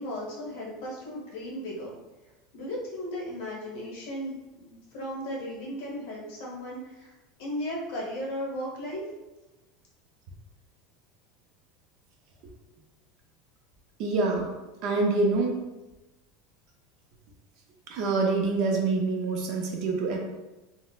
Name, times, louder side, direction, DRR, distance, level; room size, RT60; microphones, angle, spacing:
voice 1, 0.0-2.0 2.5-7.1 7.4-9.0, equal, 55° left, -4 dB, 1.1 m, -36 dB
voice 2, 14.0-14.5 14.8-15.5 17.9-20.2, right 3 dB, 40° right, 1 dB, 0.5 m, -26 dB
4.0 x 2.0 x 2.4 m, 1.1 s
supercardioid pair, 180°, 0 cm